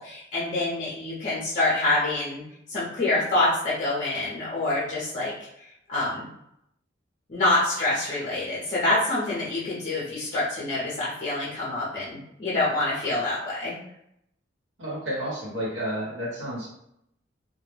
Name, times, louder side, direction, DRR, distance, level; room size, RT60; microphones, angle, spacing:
voice 1, 0.0-2.4 2.7-5.3 5.9-6.3 7.3-13.8, left 2 dB, 40° left, -8 dB, 0.6 m, -26 dB
voice 2, 14.8-16.7, right 1 dB, 75° right, -6 dB, 1.0 m, -31 dB
2.1 x 2.1 x 3.1 m, 0.78 s
head